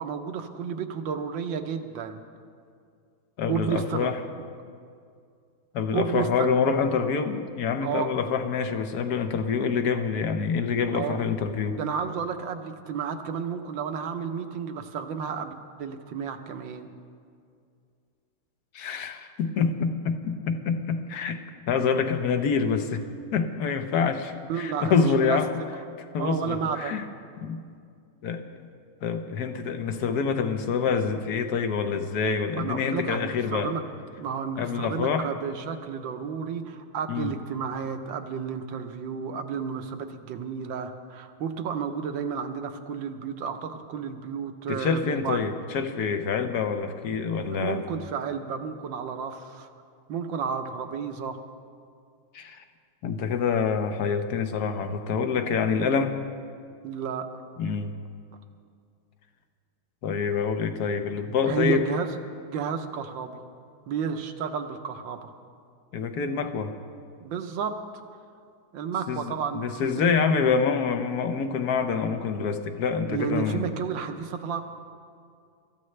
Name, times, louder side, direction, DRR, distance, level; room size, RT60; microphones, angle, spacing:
voice 1, 0.0-2.2 3.5-4.1 4.4-4.5 5.9-6.5 7.8-8.1 10.9-11.2 11.8-16.9 24.5-25.4 26.2-27.0 32.5-33.8 34.2-45.4 47.5-49.7 50.1-51.4 56.8-57.3 61.4-62.1 62.5-63.4 63.9-65.3 67.2-67.8 68.7-70.1 73.1-74.7, right 6 dB, 70° right, 7 dB, 1.5 m, -32 dB
voice 2, 3.4-4.2 5.7-11.8 18.7-21.4 21.7-23.0 23.3-25.5 26.1-27.0 27.4-27.6 28.2-28.4 29.0-33.7 34.6-35.3 37.1-37.3 44.7-47.8 52.3-52.6 53.0-56.2 57.6-57.9 60.0-61.9 65.9-66.7 69.1-73.6, left 6 dB, 60° left, 8 dB, 1.2 m, -26 dB
25.5 x 14.0 x 3.2 m, 2.3 s
omnidirectional pair, 2.3 m